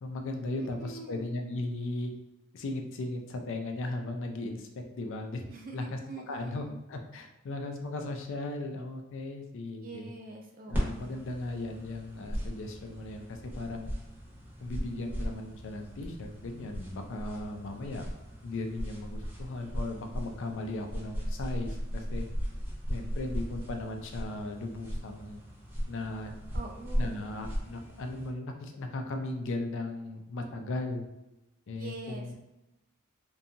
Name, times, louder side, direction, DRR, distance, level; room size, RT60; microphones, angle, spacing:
voice 1, 0.0-2.1 2.5-4.7 4.9-5.4 5.7-6.0 6.3-10.1 10.7-13.9 14.6-18.1 18.4-22.3 22.9-25.4 25.9-26.3 26.9-31.1 31.7-32.3, left 2 dB, 65° left, 4 dB, 0.4 m, -37 dB
voice 2, 0.6-1.3 5.5-6.8 9.8-11.1 26.5-27.3 31.7-32.4, right 3 dB, 45° right, 1 dB, 0.4 m, -44 dB
sound 1, 10.7-28.3, equal, 10° right, 0.7 m, -37 dB
2.7 x 2.3 x 2.6 m, 0.96 s
head